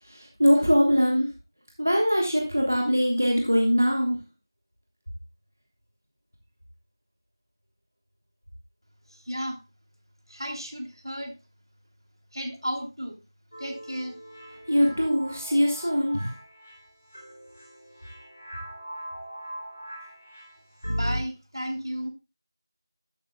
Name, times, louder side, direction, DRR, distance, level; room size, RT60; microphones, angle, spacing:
voice 1, 0.1-1.3 1.8-4.2 14.7-16.3, equal, 35° right, 1 dB, 1.3 m, -22 dB
voice 2, 9.1-9.6 10.3-11.4 12.3-13.2 13.6-14.2 20.9-22.1, equal, 85° right, 2 dB, 2.9 m, -33 dB
sound 1, 13.5-21.2, equal, 25° left, 2.8 m, -38 dB
12.0 x 7.3 x 2.2 m, 0.27 s
figure-of-eight pair, 180°, 2 cm